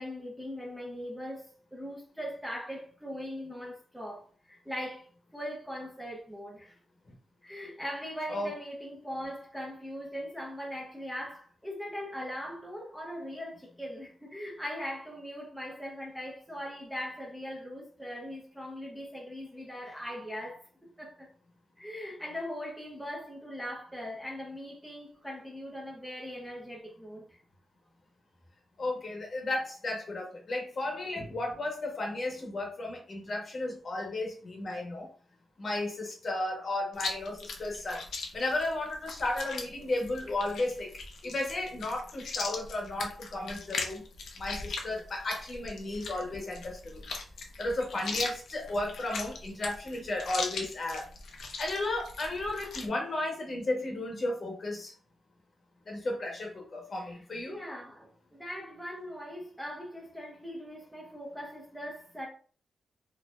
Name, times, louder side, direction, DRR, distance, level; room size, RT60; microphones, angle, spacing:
voice 1, 0.0-6.8 7.4-21.3 21.8-27.4 48.1-48.2 57.0-62.3, equal, ahead, 0.7 m, -40 dB
voice 2, 28.8-35.1 35.6-38.0 38.3-40.9 41.2-44.0 44.4-47.0 47.6-51.1 51.3-54.9 55.9-57.6, left 2 dB, 35° left, 1.0 m, -34 dB
Chewing mastication, 36.9-52.9, left 4 dB, 80° left, 0.6 m, -39 dB
4.2 x 2.7 x 2.4 m
wide cardioid pair, 175°, 0 cm